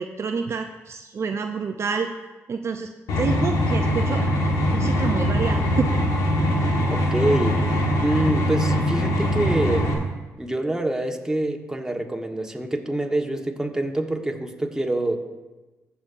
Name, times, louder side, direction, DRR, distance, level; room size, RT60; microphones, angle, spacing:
voice 1, 0.0-2.1 2.5-2.9 3.2-4.2 4.7-5.9, right 5 dB, 50° right, 5 dB, 0.6 m, -28 dB
sound 1, 3.1-9.9, equal, 80° left, 1.5 m, -22 dB
voice 2, 6.9-7.6 8.0-9.9 10.4-15.2, right 1 dB, 10° right, 3 dB, 1.3 m, -25 dB
15.5 x 6.9 x 2.6 m, 1.2 s
supercardioid pair, 55°, 6 cm